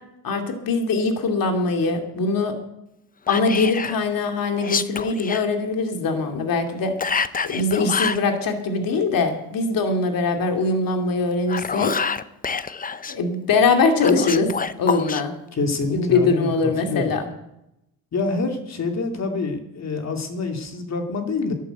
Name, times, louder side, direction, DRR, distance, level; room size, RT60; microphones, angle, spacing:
voice 1, 0.2-2.6 3.3-6.9 7.4-11.9 13.1-14.5 14.8-15.3 15.9-17.3, left 3 dB, 65° left, 4 dB, 2.6 m, -22 dB
Whispering, 3.3-4.0 4.6-5.4 7.0-8.3 11.3-13.2 14.0-15.2, left 5 dB, 25° left, 0.7 m, -27 dB
voice 2, 15.5-17.1 18.1-21.5, left 3 dB, 45° left, 4 dB, 2.7 m, -26 dB
12.0 x 11.5 x 8.0 m, 0.86 s
cardioid pair, 90°, 36 cm